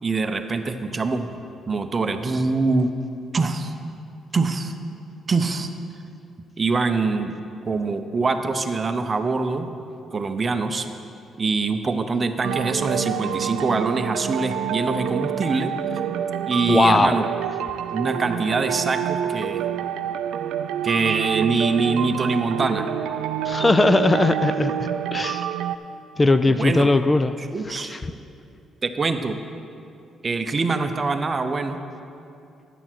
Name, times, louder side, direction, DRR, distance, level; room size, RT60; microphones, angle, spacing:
voice 1, 0.0-1.3 1.7-2.9 3.3-3.7 4.3-4.7 5.3-5.7 6.6-7.4 7.7-9.7 10.1-10.9 11.4-15.7 16.5-17.3 17.9-19.6 20.8-22.9 26.5-26.9 27.4-28.2 28.8-29.4 30.2-31.8, right 3 dB, 35° right, 8 dB, 0.7 m, -24 dB
sound 1, 12.4-25.8, right 10 dB, 85° right, 0.3 m, -27 dB
voice 2, 16.7-17.2 23.4-25.5 26.2-27.3 27.8-28.0, left 2 dB, 25° left, 11 dB, 0.3 m, -19 dB
9.9 x 7.0 x 6.0 m, 2.6 s
cardioid pair, 90°, 0 cm